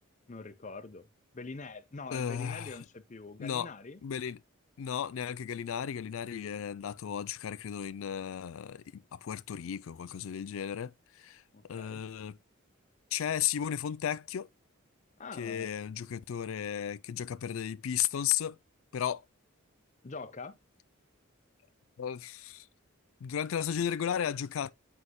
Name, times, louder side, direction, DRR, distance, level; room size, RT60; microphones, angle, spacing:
voice 1, 0.3-1.1 1.3-4.0 11.5-12.1 15.2-15.7 20.0-20.6, left 4 dB, 35° left, 0.6 m, -44 dB
voice 2, 2.1-2.8 3.4-3.7 4.0-4.4 4.8-11.4 11.7-12.4 13.1-14.5 15.4-18.6 18.9-19.2 22.0-22.7 23.2-24.7, left 9 dB, 70° left, 0.4 m, -34 dB
8.0 x 5.6 x 2.2 m
head